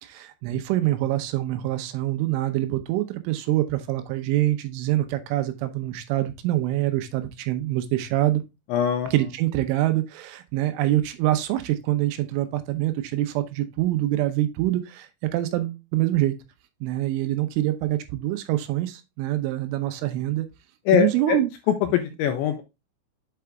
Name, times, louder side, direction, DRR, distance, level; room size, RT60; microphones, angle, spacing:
voice 1, 0.0-8.4 9.1-16.3 16.8-20.5 20.9-21.5, right 15 dB, 80° right, 9 dB, 3.2 m, -25 dB
voice 2, 8.7-9.1 20.9-21.4 21.9-22.6, left 10 dB, 85° left, 7 dB, 2.7 m, -22 dB
7.7 x 4.8 x 3.4 m, 0.24 s
omnidirectional pair, 5.8 m